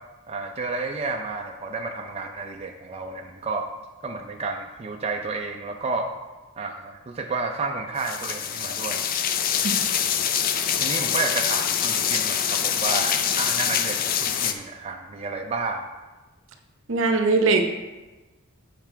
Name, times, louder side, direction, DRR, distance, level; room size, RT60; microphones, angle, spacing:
voice 1, 0.3-3.7 4.0-6.1 6.6-9.0 10.8-15.8, right 3 dB, 30° right, 2 dB, 0.4 m, -31 dB
sound 1, 8.0-14.5, left 8 dB, 40° left, 0.4 m, -25 dB
voice 2, 16.9-17.6, right 3 dB, 65° right, 5 dB, 0.8 m, -20 dB
7.7 x 4.8 x 4.5 m, 1.2 s
head